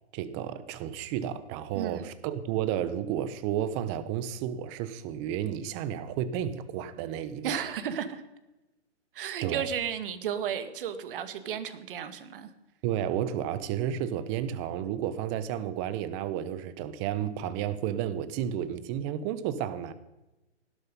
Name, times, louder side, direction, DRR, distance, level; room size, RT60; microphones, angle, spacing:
voice 1, 0.1-7.6 9.4-9.7 12.8-19.9, right 10 dB, 25° right, 1.1 m, -32 dB
voice 2, 7.4-8.2 9.1-12.5, right 8 dB, 50° right, 2.1 m, -33 dB
18.0 x 12.0 x 5.4 m
hypercardioid pair, 145°, 35 cm